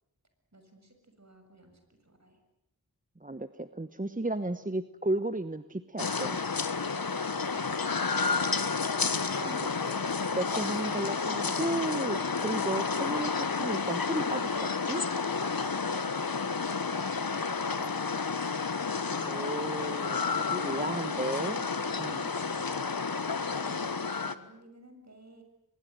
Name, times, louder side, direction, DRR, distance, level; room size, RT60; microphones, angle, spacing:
voice 1, 0.5-2.4 4.5-4.6 7.4-8.6 16.0-17.0 17.5-18.5 19.3-19.4 20.7-22.9 23.5-25.4, right 2 dB, 45° right, 5 dB, 7.0 m, -55 dB
voice 2, 3.2-6.4 9.1-15.0 19.1-21.7 22.0-22.3, right 2 dB, 20° right, 11 dB, 1.1 m, -34 dB
sound 1, 6.0-24.4, left 5 dB, 65° left, 1.5 m, -31 dB
24.0 x 22.0 x 9.3 m, 0.82 s
wide cardioid pair, 45°, 37 cm